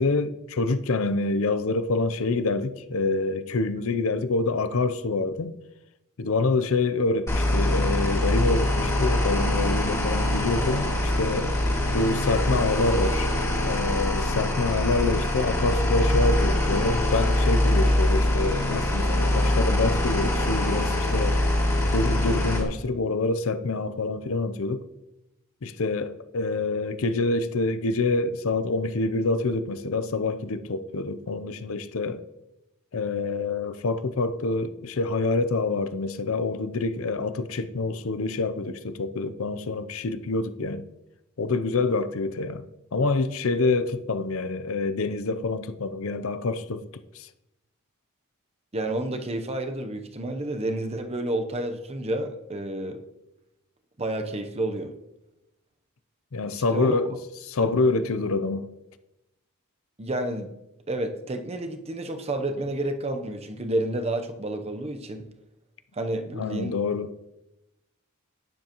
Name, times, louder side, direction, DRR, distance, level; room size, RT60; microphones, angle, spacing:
voice 1, 0.0-5.5 6.2-11.5 11.9-13.3 13.7-21.4 21.9-24.8 25.6-32.2 32.9-40.8 41.4-42.6 42.9-47.3 56.3-57.1 57.4-58.7 66.4-67.1, left 3 dB, 65° left, 0.6 m, -26 dB
sound 1, 7.3-22.6, left 1 dB, 15° left, 2.2 m, -23 dB
voice 2, 48.7-53.0 54.0-54.9 56.7-57.0 57.6-57.7 60.0-60.5 60.9-65.3 65.9-66.8, right 1 dB, 30° right, 0.8 m, -30 dB
11.5 x 9.8 x 3.0 m
head